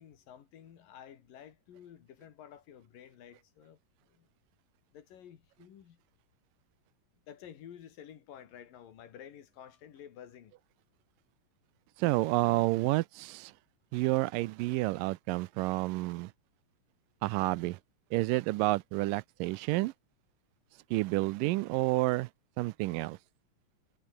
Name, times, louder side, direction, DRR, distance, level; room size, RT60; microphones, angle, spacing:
voice 1, 0.0-3.8 4.1-4.3 4.9-6.0 7.3-10.6, left 9 dB, 85° left, 3.9 m, -51 dB
voice 2, 12.0-13.5 13.9-16.3 17.2-17.8 18.1-19.9 20.9-22.3 22.6-23.2, right 20 dB, 85° right, 2.3 m, -29 dB
omnidirectional pair, 3.8 m